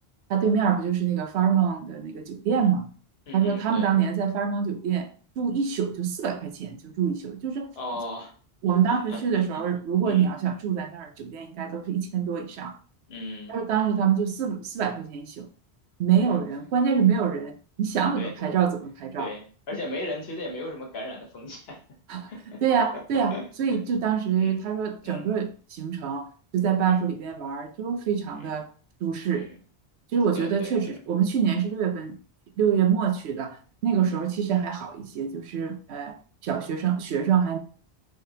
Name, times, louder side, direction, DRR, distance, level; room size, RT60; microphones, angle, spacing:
voice 1, 0.3-2.9 3.3-5.1 5.4-7.7 8.6-12.8 13.5-15.5 16.0-19.3 22.1-22.3 22.6-26.3 26.5-28.7 29.0-29.5 30.1-32.2 32.6-33.6 33.8-36.2 36.4-37.6, right 7 dB, 85° right, 0.9 m, -25 dB
voice 2, 3.3-3.9 7.8-8.3 8.9-9.6 10.0-10.3 13.1-13.6 16.2-16.4 18.2-18.3 19.2-21.8 22.3-23.8 24.3-24.6 25.0-25.3 26.9-27.0 28.3-28.5 29.3-29.5 30.3-30.9 34.0-34.2, left 1 dB, 70° left, 1.2 m, -37 dB
3.5 x 3.3 x 2.7 m
omnidirectional pair, 1.1 m